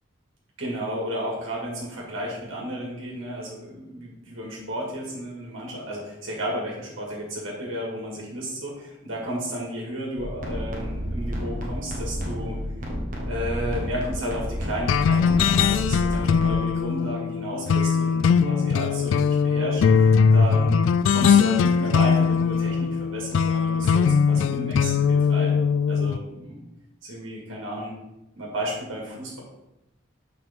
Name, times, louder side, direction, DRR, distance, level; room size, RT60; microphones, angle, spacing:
voice 1, 0.6-12.6 13.3-25.6 25.9-26.6 27.0-27.9 28.3-29.4, equal, 80° right, -4 dB, 2.0 m, -33 dB
sound 1, 10.2-16.5, equal, 45° right, 1.4 m, -31 dB
sound 2, 14.9-26.2, left 6 dB, 75° left, 0.3 m, -20 dB
7.9 x 5.2 x 3.6 m, 0.92 s
head